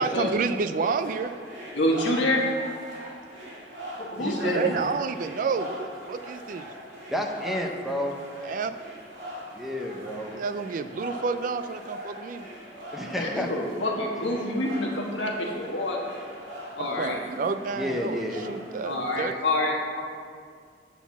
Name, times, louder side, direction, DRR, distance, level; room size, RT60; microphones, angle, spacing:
voice 1, 0.0-1.3 4.2-6.7 8.4-8.7 10.3-12.5 13.0-13.4 17.0-19.4, right 5 dB, 45° right, 10 dB, 0.3 m, -30 dB
sound 1, 1.0-19.1, equal, 70° right, 2.2 m, -42 dB
voice 2, 1.7-2.4 4.0-4.8 13.1-16.0 16.7-17.2 18.8-20.0, left 1 dB, 85° left, -1 dB, 1.4 m, -27 dB
voice 3, 4.2-4.7 7.1-8.1 9.5-10.3 12.9-13.5 17.7-18.4, left 1 dB, ahead, 1 dB, 0.6 m, -30 dB
8.1 x 4.1 x 6.9 m, 2.1 s
head